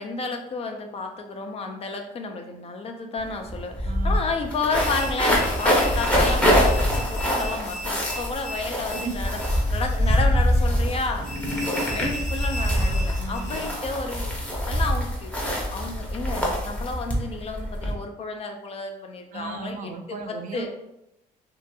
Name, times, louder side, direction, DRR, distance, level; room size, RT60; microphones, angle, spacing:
voice 1, 0.0-9.4 9.7-11.3 11.6-14.3 14.7-15.3 15.7-19.9 20.3-20.7, left 3 dB, 35° left, 4 dB, 0.4 m, -31 dB
sound 1, 3.2-3.3 3.5-17.9, equal, 10° left, 0.7 m, -24 dB
voice 2, 3.8-4.3 8.9-9.3 13.2-13.7 19.3-20.7, right 4 dB, 50° right, 6 dB, 0.4 m, -36 dB
sound 2, 4.7-13.8, equal, 85° left, 0.8 m, -38 dB
2.8 x 2.5 x 2.2 m, 0.87 s
cardioid pair, 110°, 17 cm